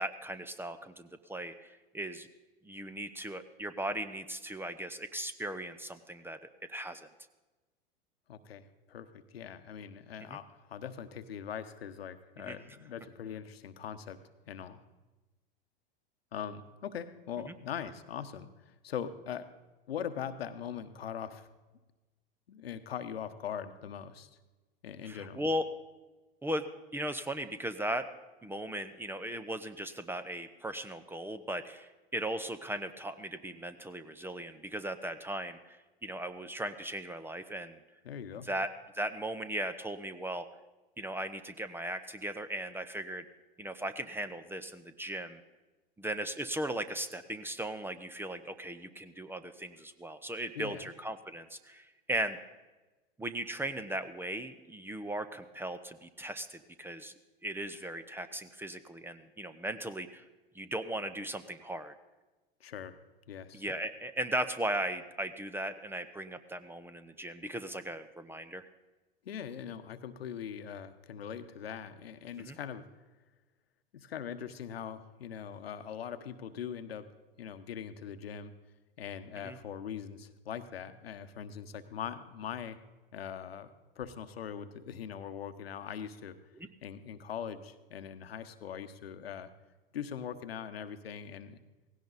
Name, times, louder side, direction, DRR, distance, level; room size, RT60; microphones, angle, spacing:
voice 1, 0.0-2.3 2.6-6.4 6.7-7.1 10.3-10.4 12.4-12.6 25.0-25.7 26.4-28.1 28.4-35.8 36.0-37.8 38.4-38.7 38.9-40.5 41.0-43.2 43.6-45.4 46.0-52.4 53.2-57.1 57.4-60.2 60.5-61.9 63.5-68.7 72.4-72.6 79.4-79.6, right 1 dB, 5° right, 11 dB, 0.7 m, -37 dB
voice 2, 8.3-14.2 14.5-14.8 16.3-19.5 19.9-21.5 22.5-24.3 24.8-25.4 38.0-38.5 50.5-50.9 62.6-62.9 63.3-63.6 69.2-72.8 73.9-77.1 77.4-78.5 79.0-82.8 83.1-86.4 86.8-89.5 89.9-91.6, left 8 dB, 80° left, 9 dB, 1.1 m, -41 dB
17.5 x 16.5 x 4.1 m, 1.2 s
hypercardioid pair, 95°, 30 cm